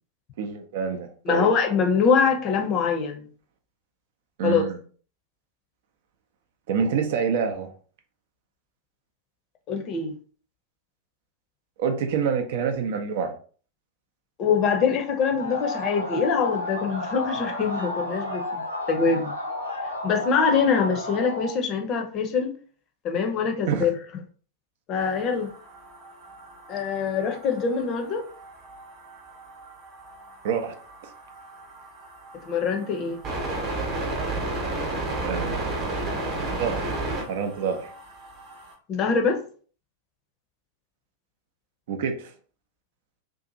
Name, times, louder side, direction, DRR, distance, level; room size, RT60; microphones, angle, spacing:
voice 1, 0.4-1.5 4.4-4.8 6.7-7.7 11.8-13.3 23.7-23.9 30.4-30.7 35.2-36.0 36.5-36.9 37.3-37.9 41.9-42.3, right 6 dB, 55° right, 0.5 m, -27 dB
voice 2, 1.3-3.3 4.4-4.6 9.7-10.1 14.4-18.6 18.9-19.3 20.0-22.5 23.0-23.9 24.9-25.5 26.7-28.2 32.5-33.2 38.9-39.4, left 5 dB, 35° left, 0.6 m, -24 dB
sound 1, 15.4-21.6, left 1 dB, 80° left, 0.7 m, -32 dB
sound 2, 25.0-38.7, right 2 dB, 35° right, 0.9 m, -34 dB
2.7 x 2.4 x 2.6 m
figure-of-eight pair, 90°, 0 cm